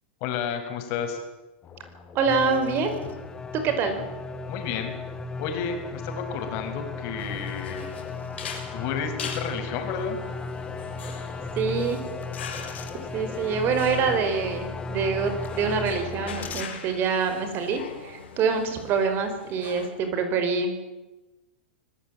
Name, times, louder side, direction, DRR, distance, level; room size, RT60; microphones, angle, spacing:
voice 1, 0.2-1.2 4.5-4.9 5.4-7.8 8.7-10.2, left 7 dB, 50° left, 6 dB, 5.9 m, -31 dB
sound 1, 1.6-16.6, left 4 dB, 25° left, 3.1 m, -41 dB
voice 2, 2.1-3.0 3.5-4.0 11.6-12.0 13.1-20.7, right 5 dB, 40° right, 8 dB, 5.2 m, -25 dB
sound 2, 2.3-15.9, left 4 dB, 10° left, 1.5 m, -36 dB
sound 3, 7.2-19.9, left 6 dB, 85° left, 6.5 m, -42 dB
24.5 x 16.5 x 9.0 m, 1.1 s
hypercardioid pair, 125°, 6 cm